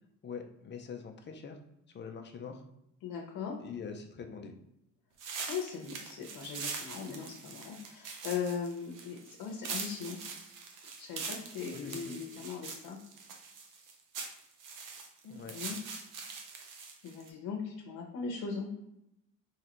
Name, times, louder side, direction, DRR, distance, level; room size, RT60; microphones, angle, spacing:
voice 1, 0.2-1.6 1.9-2.6 3.6-4.5 11.7-12.0 15.3-15.6, left 6 dB, 35° left, 5 dB, 0.5 m, -43 dB
voice 2, 3.0-3.5 5.5-10.2 11.0-13.0 15.2-15.8 17.0-18.7, left 6 dB, 70° left, 0 dB, 0.8 m, -39 dB
sound 1, 5.2-17.3, right 5 dB, 65° right, 0.8 m, -43 dB
3.8 x 3.2 x 3.0 m, 0.82 s
cardioid pair, 135°, 34 cm